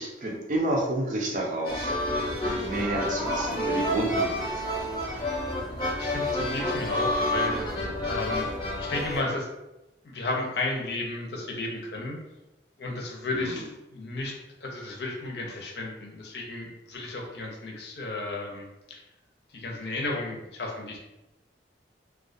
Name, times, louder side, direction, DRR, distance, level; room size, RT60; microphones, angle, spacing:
voice 1, 0.0-1.9 2.4-4.8 13.3-13.6, right 1 dB, 45° right, -1 dB, 0.4 m, -30 dB
sound 1, 1.6-9.2, left 1 dB, 25° left, 0.6 m, -29 dB
voice 2, 6.0-7.6 8.0-8.5 8.8-9.5 10.0-12.2 12.8-19.0 19.5-21.0, left 2 dB, 70° left, 0 dB, 0.5 m, -33 dB
2.2 x 2.2 x 2.5 m, 0.95 s
head